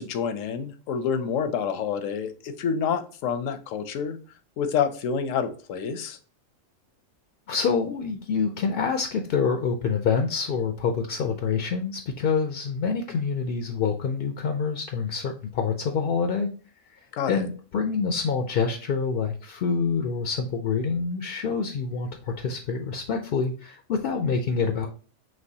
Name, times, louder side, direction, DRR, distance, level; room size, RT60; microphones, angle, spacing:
voice 1, 0.0-4.2 4.6-6.2 17.1-17.5, left 7 dB, 80° left, 10 dB, 1.0 m, -28 dB
voice 2, 7.5-16.5 16.9-24.9, left 5 dB, 65° left, 5 dB, 0.6 m, -26 dB
5.3 x 3.1 x 2.7 m, 0.39 s
omnidirectional pair, 1.3 m